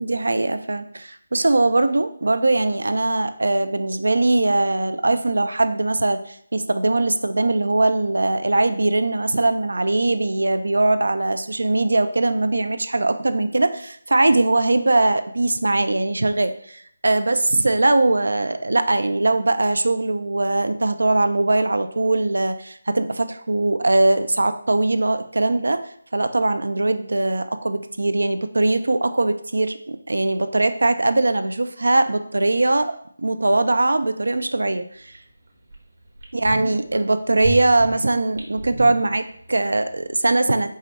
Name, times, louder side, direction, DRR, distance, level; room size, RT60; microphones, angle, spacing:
voice 1, 0.0-25.8 26.1-32.9 33.2-35.1 36.3-40.7, right 2 dB, 80° right, 10 dB, 0.4 m, -21 dB
sound 1, 35.1-35.2 35.7-35.8 36.2-37.0 37.4-39.6 39.9-40.0, right 1 dB, 60° right, 1.0 m, -32 dB
4.7 x 2.1 x 4.1 m, 0.64 s
figure-of-eight pair, 165°, 0 cm